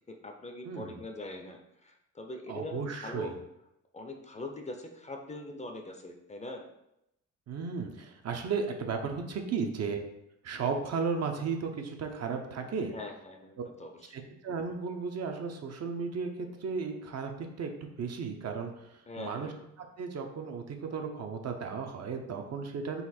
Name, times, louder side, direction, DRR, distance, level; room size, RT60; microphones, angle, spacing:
voice 1, 0.1-3.3 3.9-6.6 9.6-9.7 12.9-14.1 19.1-19.6, left 1 dB, 20° left, 3 dB, 0.5 m, -42 dB
voice 2, 0.6-1.0 2.5-3.3 7.5-10.0 10.4-12.9 14.1-17.7 18.0-19.5 19.8-23.0, right 5 dB, 55° right, 4 dB, 0.6 m, -35 dB
4.0 x 2.5 x 4.2 m, 0.84 s
cardioid pair, 95°, 31 cm